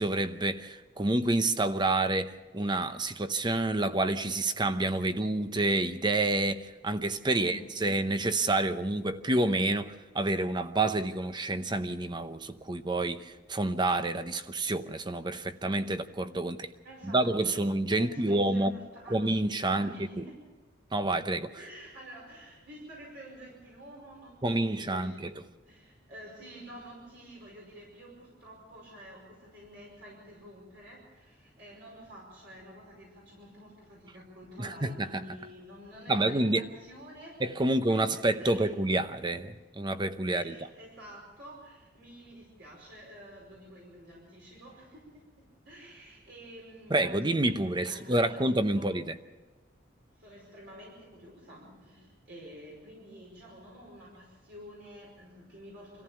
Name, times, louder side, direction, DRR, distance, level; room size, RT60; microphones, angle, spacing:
voice 1, 0.0-16.7 17.0-18.7 19.1-20.2 20.9-21.5 24.4-25.4 34.6-35.1 36.1-36.6 37.4-40.7 46.9-49.1, right 2 dB, 25° right, 0.8 m, -28 dB
voice 2, 7.4-7.7 16.8-17.7 18.0-19.3 19.6-20.4 21.6-25.3 25.7-37.4 37.9-38.7 40.3-45.3 45.7-48.9 50.2-56.0, equal, 60° right, 5.3 m, -49 dB
25.5 x 14.5 x 7.0 m
head